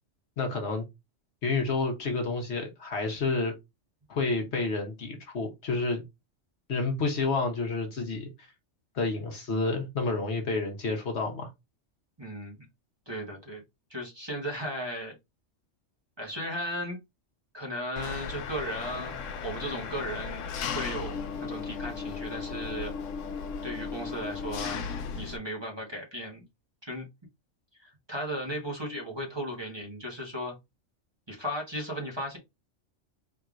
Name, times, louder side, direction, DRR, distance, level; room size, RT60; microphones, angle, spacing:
voice 1, 0.4-0.8 1.4-3.5 4.1-6.0 6.7-8.3 8.9-11.5, left 3 dB, 60° left, 1.2 m, -29 dB
voice 2, 12.2-12.6 13.1-13.6 13.9-15.1 16.2-17.0 17.5-20.4 20.7-22.9 23.6-24.8 25.2-26.4 26.8-27.0 27.8-30.5 31.3-32.4, equal, 20° right, 1.3 m, -36 dB
Engine, 18.0-25.4, left 6 dB, 85° left, 1.0 m, -36 dB
4.3 x 3.5 x 2.5 m
omnidirectional pair, 1.3 m